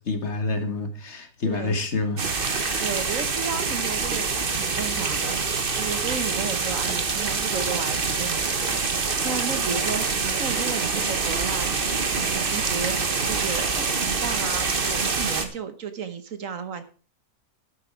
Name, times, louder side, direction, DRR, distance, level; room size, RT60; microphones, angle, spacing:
voice 1, 0.1-2.9, left 3 dB, 50° left, 1.6 m, -28 dB
voice 2, 1.4-1.8 2.6-16.8, right 6 dB, 60° right, 1.4 m, -34 dB
sound 1, 2.2-15.4, right 4 dB, 40° right, 1.3 m, -26 dB
11.0 x 9.2 x 4.6 m
omnidirectional pair, 1.6 m